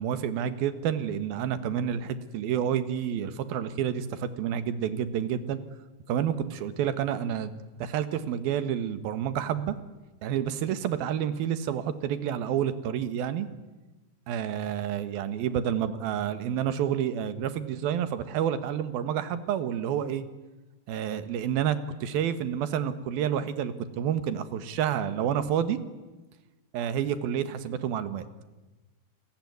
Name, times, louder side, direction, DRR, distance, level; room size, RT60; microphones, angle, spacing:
voice 1, 0.0-5.6 6.1-7.5 7.8-9.8 10.2-13.5 14.3-20.2 20.9-25.8 26.7-28.2, right 9 dB, 85° right, 13 dB, 3.3 m, -29 dB
29.5 x 21.0 x 9.5 m, 1.1 s
omnidirectional pair, 4.1 m